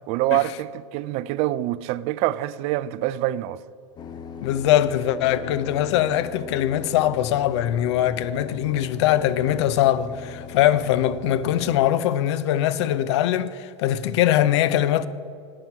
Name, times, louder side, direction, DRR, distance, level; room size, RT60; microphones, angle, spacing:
voice 1, 0.1-3.6, right 15 dB, 40° right, 0.4 m, -25 dB
sound 1, 4.0-11.9, left 7 dB, 25° left, 0.7 m, -39 dB
voice 2, 4.4-15.1, left 12 dB, 60° left, 0.6 m, -22 dB
12.0 x 8.9 x 4.5 m
hypercardioid pair, 125°, 16 cm